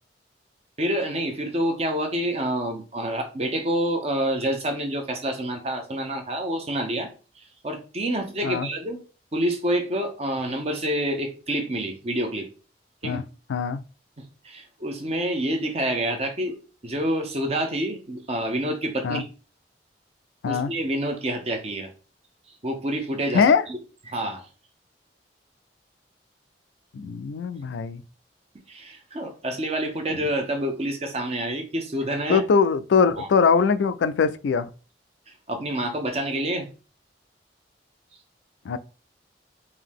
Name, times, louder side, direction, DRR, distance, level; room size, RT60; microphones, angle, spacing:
voice 1, 0.8-7.1 7.4-9.0 9.3-12.5 13.0-13.2 14.2-16.6 16.8-19.2 20.5-21.9 22.6-23.8 24.1-24.5 28.7-32.4 33.2-33.3 35.3-36.7, right 1 dB, 35° right, 0.8 m, -28 dB
voice 2, 13.5-13.8 19.0-19.2 20.4-20.7 23.3-23.6 26.9-28.0 32.3-34.7 38.7-38.8, left 5 dB, 90° left, 0.4 m, -21 dB
3.8 x 2.7 x 3.6 m
head